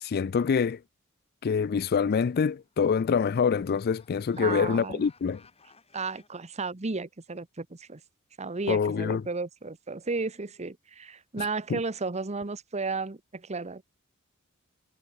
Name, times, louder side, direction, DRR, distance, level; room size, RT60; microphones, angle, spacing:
voice 1, 0.0-0.8 1.4-5.4 8.7-9.2 11.4-11.5 11.7-11.8, left 6 dB, 45° left, 0.4 m, -25 dB
sound 1, 2.5-6.3, left 4 dB, 30° left, 6.7 m, -61 dB
voice 2, 4.4-5.0 5.9-8.0 8.4-13.8, right 3 dB, 30° right, 1.0 m, -33 dB
head